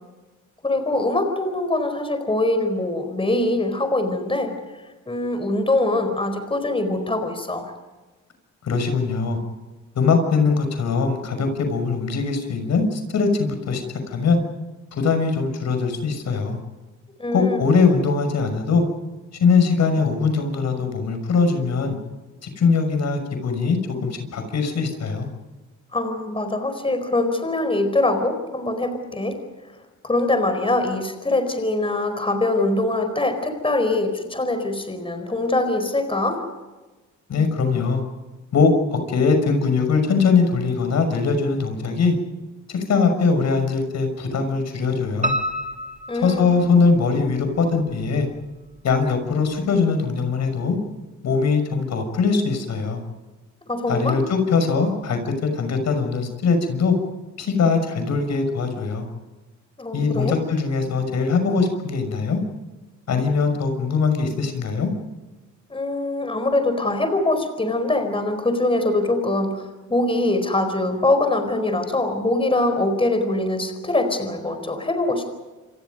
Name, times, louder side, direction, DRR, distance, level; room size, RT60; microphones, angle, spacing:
voice 1, 0.6-7.7 17.2-17.6 25.9-29.4 30.0-36.4 46.1-46.5 53.7-54.2 59.8-60.4 65.7-75.2, left 2 dB, 20° left, 7 dB, 4.6 m, -23 dB
voice 2, 8.6-9.4 9.9-14.4 14.9-16.6 17.3-18.8 19.4-22.0 22.4-25.3 37.3-38.0 38.5-42.2 42.7-45.3 46.2-48.3 48.8-50.8 51.2-53.0 53.9-57.0 57.4-59.1 59.9-62.4 63.1-64.9, left 4 dB, 65° left, 7 dB, 6.2 m, -21 dB
Piano, 45.2-47.2 47.6-48.4 48.8-48.9 49.3-49.4 49.7-49.8, equal, 25° right, 2.5 m, -29 dB
28.5 x 24.0 x 5.3 m, 1.2 s
cardioid pair, 90°, 30 cm